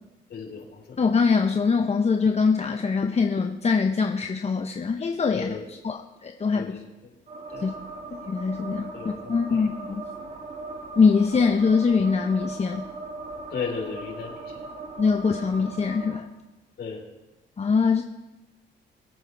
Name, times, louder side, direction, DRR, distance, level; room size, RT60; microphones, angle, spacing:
voice 1, 0.3-1.0 5.3-5.6 6.5-6.7 7.5-7.7 8.9-9.6 13.5-14.6 16.8-17.0, left 5 dB, 55° left, -1 dB, 4.1 m, -35 dB
voice 2, 1.0-6.8 7.6-7.7 8.3-10.1 11.0-12.8 15.0-16.3 17.6-18.0, left 5 dB, 35° left, 4 dB, 0.9 m, -23 dB
sound 1, 7.3-16.2, right 3 dB, 35° right, 2.0 m, -39 dB
23.0 x 9.0 x 3.5 m, 1.1 s
cardioid pair, 90°, 20 cm